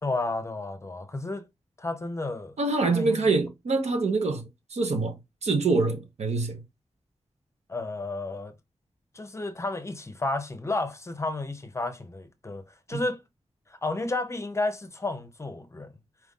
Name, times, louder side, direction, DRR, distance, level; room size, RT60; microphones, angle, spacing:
voice 1, 0.0-1.4 1.8-2.5 2.9-3.3 7.7-8.5 9.1-12.6 12.9-13.2 13.7-15.9, left 2 dB, 25° left, 0.6 m, -32 dB
voice 2, 2.6-5.1 5.4-6.6 12.9-13.0, right 3 dB, 70° right, 0.9 m, -25 dB
4.5 x 2.5 x 3.6 m
wide cardioid pair, 155°, 12 cm